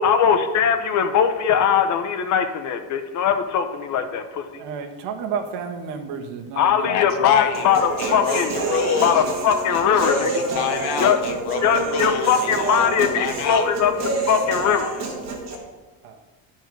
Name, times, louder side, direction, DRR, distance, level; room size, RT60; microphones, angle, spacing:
voice 1, 0.0-4.6 6.6-8.5 9.0-10.4 11.0-11.2 11.6-13.9 14.2-14.9, left 7 dB, 45° left, 8 dB, 0.8 m, -20 dB
voice 2, 4.6-6.9 16.0-16.2, right 6 dB, 70° right, 4 dB, 1.4 m, -31 dB
voice 3, 6.9-9.2 9.7-13.7, left 8 dB, 65° left, 7 dB, 1.1 m, -28 dB
Human voice, 7.5-15.6, right 3 dB, 40° right, 1.9 m, -27 dB
12.5 x 4.6 x 6.2 m, 1.3 s
cardioid pair, 155°, 42 cm